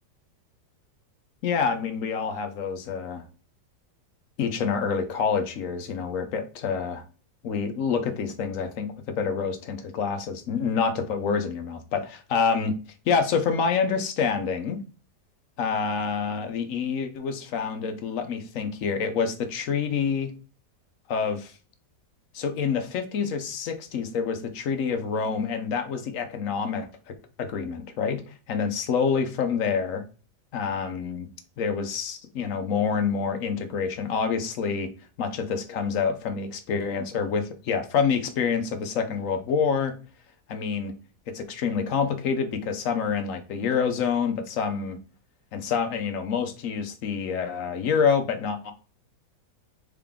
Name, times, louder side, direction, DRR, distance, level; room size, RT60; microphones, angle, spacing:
voice 1, 1.4-3.2 4.4-7.0 7.4-12.8 13.1-14.8 15.6-20.3 21.1-21.5 22.3-30.0 30.5-31.3 31.6-34.9 35.2-39.9 40.5-40.9 41.3-45.0 45.5-48.7, left 6 dB, 60° left, 0.9 m, -27 dB
3.7 x 3.6 x 3.5 m
omnidirectional pair, 1.8 m